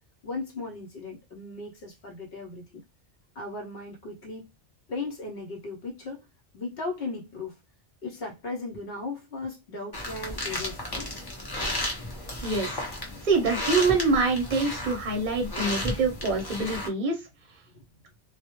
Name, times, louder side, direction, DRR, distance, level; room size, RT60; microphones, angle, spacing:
voice 1, 0.2-2.8 3.3-4.5 4.9-6.3 6.5-7.6 8.0-11.2, left 3 dB, 65° left, 0.8 m, -37 dB
sound 1, 9.9-16.9, left 1 dB, 25° left, 0.5 m, -33 dB
voice 2, 12.4-12.8 13.2-17.2, right 3 dB, 50° right, 0.7 m, -25 dB
2.1 x 2.0 x 2.9 m
omnidirectional pair, 1.1 m